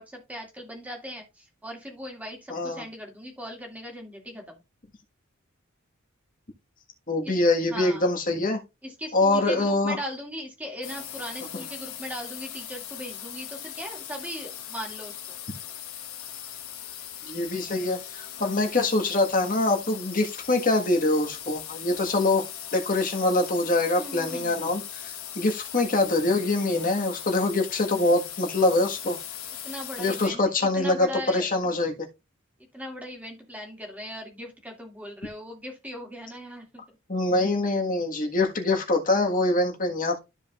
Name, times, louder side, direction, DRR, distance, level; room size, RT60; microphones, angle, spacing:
voice 1, 0.0-4.6 7.2-8.1 8.8-15.4 24.0-24.6 29.6-31.7 32.7-37.0, equal, 5° right, 2.3 m, -39 dB
voice 2, 2.5-2.8 7.1-8.6 9.1-10.0 11.5-11.6 17.3-22.4 22.7-29.2 30.0-31.9 37.1-40.2, left 2 dB, 40° left, 1.6 m, -24 dB
sound 1, 10.8-30.3, left 10 dB, 80° left, 1.2 m, -39 dB
13.0 x 5.0 x 2.5 m
head